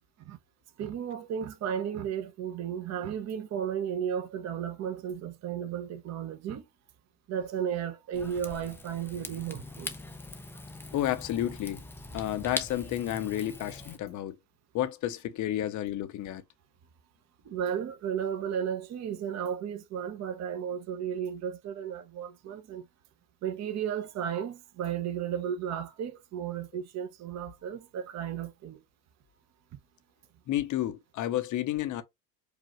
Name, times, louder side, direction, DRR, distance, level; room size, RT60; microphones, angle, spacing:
voice 1, 0.8-6.7 7.3-10.0 17.4-22.9 23.4-28.8, right 8 dB, 35° right, 0.8 m, -34 dB
Rain / Fire, 8.1-14.0, left 2 dB, 5° left, 0.4 m, -42 dB
voice 2, 10.9-11.8 12.1-14.4 14.7-16.4 30.5-32.0, left 13 dB, 40° left, 0.8 m, -31 dB
4.9 x 2.4 x 3.0 m
hypercardioid pair, 95°, 48 cm